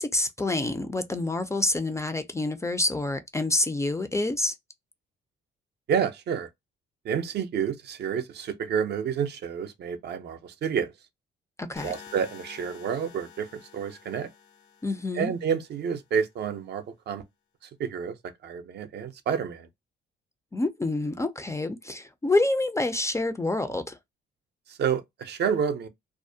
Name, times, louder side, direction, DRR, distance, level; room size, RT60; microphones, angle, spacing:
voice 1, 0.0-4.5 11.6-11.9 14.8-15.3 20.5-24.0, left 2 dB, 15° left, 0.3 m, -27 dB
voice 2, 5.9-6.5 7.0-10.9 11.8-14.3 15.1-17.2 17.6-19.7 24.7-25.9, right 7 dB, 55° right, 0.5 m, -29 dB
sound 1, 11.8-15.8, left 7 dB, 75° left, 0.6 m, -49 dB
2.4 x 2.1 x 2.5 m
cardioid pair, 90°, 20 cm